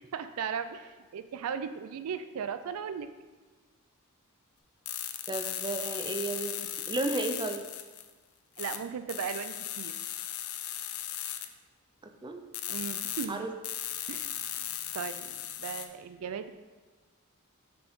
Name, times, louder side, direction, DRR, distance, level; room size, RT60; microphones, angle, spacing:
voice 1, 0.1-3.1 8.6-10.0 12.7-13.5 14.1-16.5, right 7 dB, 80° right, 11 dB, 0.4 m, -37 dB
sound 1, 4.8-8.1 8.6-8.8 9.1-11.5 12.5-13.2 13.6-15.9, left 11 dB, 75° left, 0.5 m, -37 dB
voice 2, 5.3-7.6 12.2-12.4 13.3-13.5, right 2 dB, 20° right, 5 dB, 0.5 m, -33 dB
6.1 x 6.1 x 3.6 m, 1.3 s
head